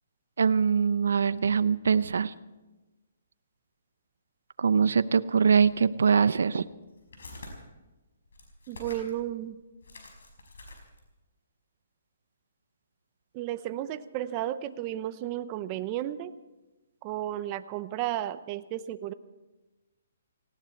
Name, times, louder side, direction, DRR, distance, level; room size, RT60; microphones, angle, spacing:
voice 1, 0.4-2.3 4.6-6.6, right 6 dB, 80° right, 16 dB, 0.7 m, -23 dB
sound 1, 5.7-5.8 6.5-7.5 8.2-9.2 9.5-9.6 9.8-11.1, left 2 dB, 85° left, 5.3 m, -47 dB
voice 2, 8.7-9.6 13.3-16.3 17.0-19.1, right 13 dB, 25° right, 12 dB, 0.7 m, -33 dB
18.5 x 17.0 x 4.6 m, 1.1 s
hypercardioid pair, 160°, 0 cm